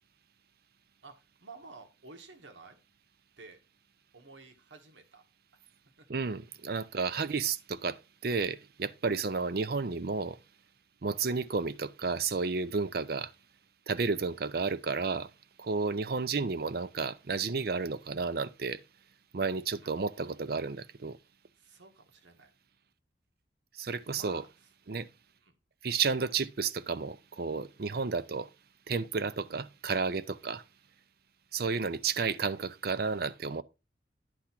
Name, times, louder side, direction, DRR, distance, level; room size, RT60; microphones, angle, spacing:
voice 1, 1.0-2.8 3.4-3.6 4.1-5.2 5.5-5.6 6.0-6.1 19.8-19.9 21.6-22.5 24.1-24.5 25.4-25.5 32.1-32.6, right 3 dB, 85° right, 1.4 m, -52 dB
voice 2, 6.1-10.4 11.0-13.3 13.9-15.3 15.6-18.8 19.3-21.2 23.8-24.4 24.9-25.1 25.8-28.5 28.9-30.6 31.5-33.6, right 4 dB, 55° right, 0.5 m, -32 dB
10.0 x 3.5 x 5.8 m
head